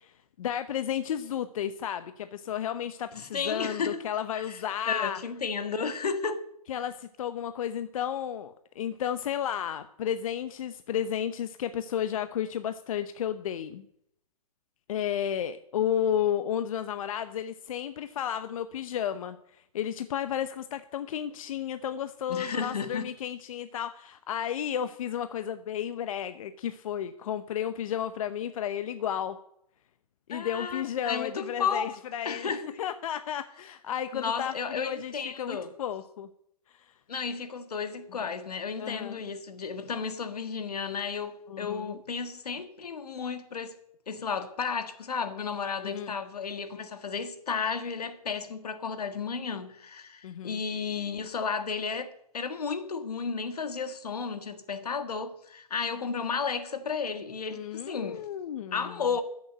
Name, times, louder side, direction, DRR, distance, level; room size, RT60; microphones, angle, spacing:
voice 1, 0.0-5.2 6.7-13.8 14.9-29.4 30.3-32.5 32.8-36.3 36.7-37.0 38.8-39.2 41.5-42.0 45.8-46.2 50.2-50.6 57.5-59.0, left 9 dB, 60° left, 0.8 m, -33 dB
voice 2, 3.2-4.0 4.5-4.6 4.9-6.4 22.3-23.1 30.3-32.0 32.3-32.7 34.1-35.7 37.1-43.7 44.1-58.3 58.7-59.2, left 5 dB, 85° left, 1.7 m, -33 dB
13.5 x 7.1 x 7.7 m
hypercardioid pair, 135°, 19 cm